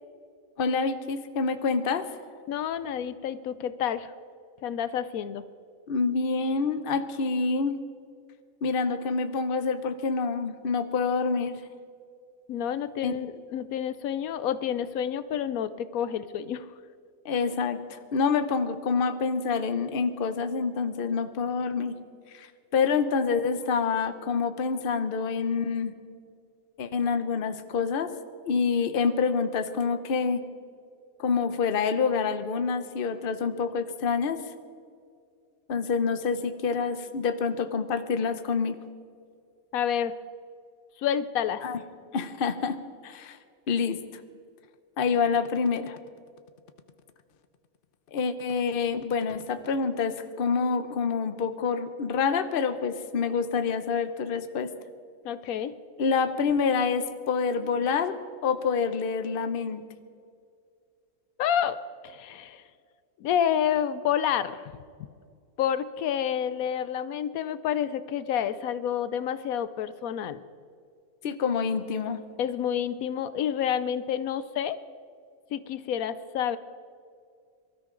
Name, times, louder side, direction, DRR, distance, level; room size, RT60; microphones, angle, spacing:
voice 1, 0.6-2.1 5.9-7.8 8.6-11.6 13.0-13.1 17.2-21.9 22.3-22.5 22.7-25.9 26.8-28.1 28.4-30.4 31.2-34.4 35.7-38.8 41.6-41.8 42.1-42.8 43.0-43.4 43.7-44.0 45.0-46.0 48.1-54.7 56.0-58.2 58.4-59.8 71.2-72.2, left 5 dB, 45° left, 10 dB, 0.9 m, -27 dB
voice 2, 2.5-4.1 4.6-5.4 12.5-16.7 39.7-40.2 41.0-41.7 55.2-55.7 61.4-61.8 62.0-62.6 63.2-64.7 65.6-70.4 72.4-74.8 75.5-76.6, left 9 dB, 85° left, 14 dB, 1.1 m, -29 dB
24.0 x 13.0 x 3.8 m, 2.2 s
omnidirectional pair, 1.5 m